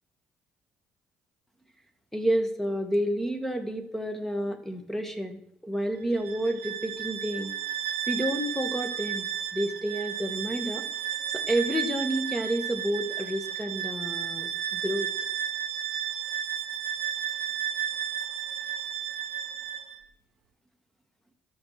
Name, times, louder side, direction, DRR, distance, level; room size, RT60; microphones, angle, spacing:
voice 1, 2.1-7.5 8.1-10.9 11.3-15.1, right 1 dB, 5° left, 6 dB, 2.0 m, -30 dB
Bowed string instrument, 6.1-20.0, right 9 dB, 85° right, 0.8 m, -33 dB
12.5 x 6.5 x 6.0 m, 0.74 s
hypercardioid pair, 55°, 5 cm